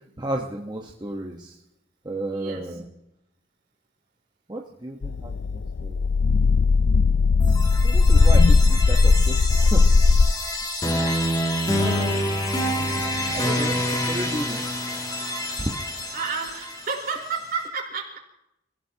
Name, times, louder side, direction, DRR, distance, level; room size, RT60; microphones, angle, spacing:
voice 1, 0.2-1.6 2.0-2.9 4.5-6.1 7.8-10.0 10.8-11.3 11.8-12.8 13.3-15.0 15.6-15.7, right 1 dB, 20° right, 0 dB, 1.2 m, -33 dB
voice 2, 2.3-2.8 16.1-18.2, right 5 dB, 55° right, 0 dB, 4.3 m, -31 dB
sound 1, 5.0-10.3, left 4 dB, 80° left, 0.5 m, -18 dB
sound 2, 7.4-17.3, left 1 dB, 20° left, 2.4 m, -27 dB
29.5 x 16.0 x 2.9 m, 0.85 s
head